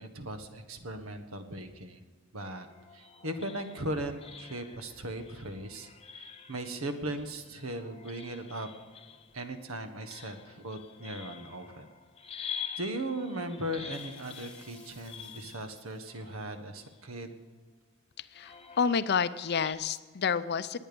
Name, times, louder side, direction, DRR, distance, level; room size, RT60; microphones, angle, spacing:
voice 1, 0.0-2.0 2.3-2.7 2.9-8.7 9.3-11.9 12.8-17.4, right 1 dB, 85° right, 8 dB, 1.4 m, -38 dB
sound 1, 2.4-17.3 18.3-19.7, left 7 dB, 30° left, 0.8 m, -47 dB
sound 2, 13.9-16.1, left 3 dB, 5° left, 1.2 m, -56 dB
voice 2, 18.2-20.8, left 6 dB, 50° left, 14 dB, 0.5 m, -29 dB
20.0 x 9.0 x 5.3 m, 1.5 s
head